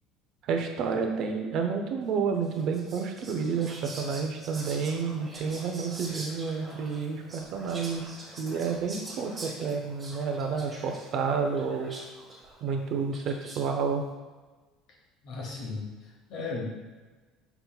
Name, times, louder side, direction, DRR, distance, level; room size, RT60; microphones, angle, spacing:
voice 1, 0.4-8.1 8.4-11.9 12.6-14.0, right 5 dB, 50° right, 4 dB, 0.5 m, -30 dB
Whispering, 2.4-13.7, right 1 dB, 20° right, 1.0 m, -45 dB
voice 2, 15.2-16.7, left 3 dB, 55° left, -1 dB, 1.0 m, -36 dB
5.6 x 3.9 x 2.3 m, 1.3 s
cardioid pair, 155°, 0 cm